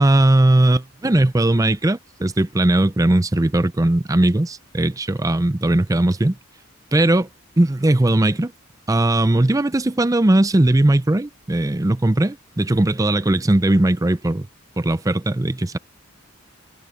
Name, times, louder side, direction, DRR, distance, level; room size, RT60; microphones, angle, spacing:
voice 1, 0.0-6.4 6.9-7.3 7.6-8.5 8.9-14.5 14.8-15.8, right 1 dB, 15° right, 0.5 m, -18 dB
head